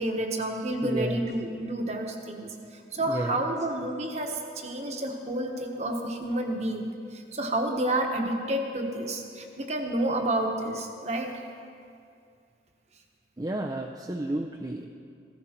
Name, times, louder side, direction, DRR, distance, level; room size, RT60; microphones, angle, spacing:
voice 1, 0.0-11.3, right 1 dB, 40° right, 3 dB, 1.3 m, -30 dB
voice 2, 0.8-1.3 3.1-3.4 13.4-14.9, right 1 dB, 20° right, 2 dB, 0.5 m, -31 dB
16.0 x 14.5 x 4.4 m, 2.4 s
head